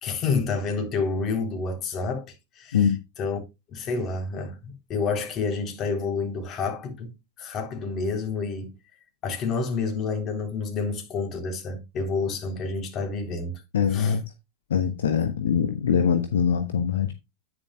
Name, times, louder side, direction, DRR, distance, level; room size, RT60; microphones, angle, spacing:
voice 1, 0.0-2.9 3.2-3.4 3.7-8.7 9.2-13.5 13.9-14.2, left 4 dB, 30° left, 3.8 m, -29 dB
voice 2, 13.7-14.2 14.7-17.1, left 7 dB, 65° left, 1.1 m, -23 dB
10.0 x 10.0 x 2.3 m
figure-of-eight pair, 90°, 0 cm